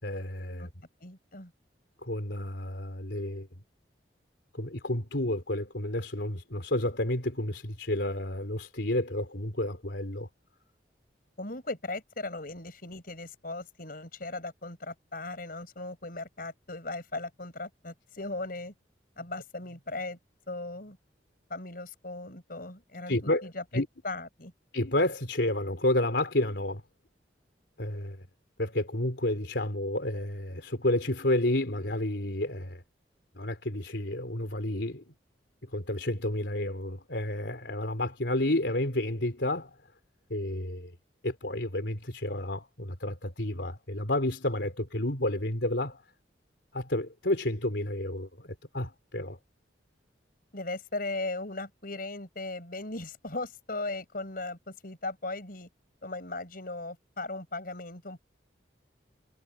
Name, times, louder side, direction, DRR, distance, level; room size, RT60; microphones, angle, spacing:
voice 1, 0.0-0.7 2.0-3.5 4.5-10.3 23.1-23.9 24.7-26.8 27.8-28.3 28.6-32.8 33.4-35.0 35.7-39.8 40.3-40.9 41.2-46.0 46.7-49.4, left 1 dB, 70° left, 3.7 m, -30 dB
voice 2, 1.0-1.5 11.4-18.7 19.2-20.2 20.5-21.0 21.5-23.2 23.4-24.5 50.5-55.7 56.0-58.2, left 2 dB, 50° left, 6.3 m, -38 dB
head